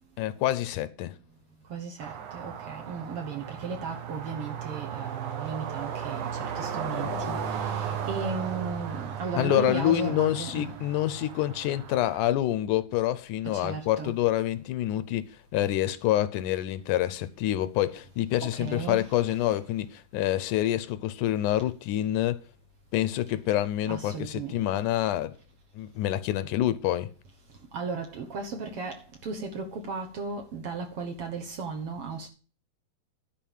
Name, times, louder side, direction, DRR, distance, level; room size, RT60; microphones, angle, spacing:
voice 1, 0.2-1.1 9.4-15.2 15.5-22.4 22.9-25.4 25.8-27.1, left 13 dB, 80° left, 2.1 m, -27 dB
voice 2, 1.7-6.3 6.6-7.4 8.1-10.7 13.6-14.1 18.5-19.0 23.9-24.5 27.7-29.0 29.2-32.3, right 4 dB, 55° right, 1.8 m, -35 dB
sound 1, 2.0-12.3, right 7 dB, 75° right, 2.6 m, -35 dB
11.0 x 4.8 x 7.2 m
omnidirectional pair, 3.6 m